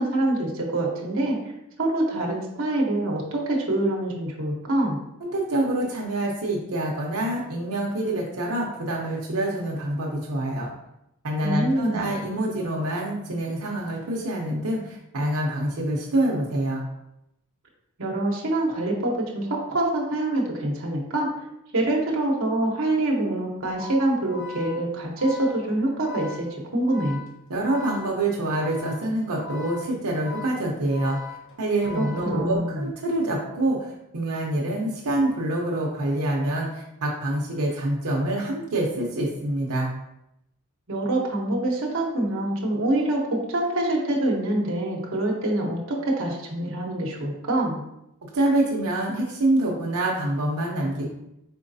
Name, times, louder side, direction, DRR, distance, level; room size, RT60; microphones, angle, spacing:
voice 1, 0.0-1.4 1.8-5.0 11.4-12.1 18.0-21.3 21.7-26.5 26.7-27.2 31.9-32.8 40.9-47.8, right 1 dB, 60° right, -2 dB, 0.9 m, -25 dB
voice 2, 5.2-10.7 11.2-16.8 27.5-31.2 31.6-39.9 48.2-51.1, right 1 dB, 85° right, -2 dB, 0.7 m, -26 dB
Organ, 23.6-32.8, left 5 dB, 55° left, 1.1 m, -41 dB
4.4 x 3.9 x 2.7 m, 0.83 s
head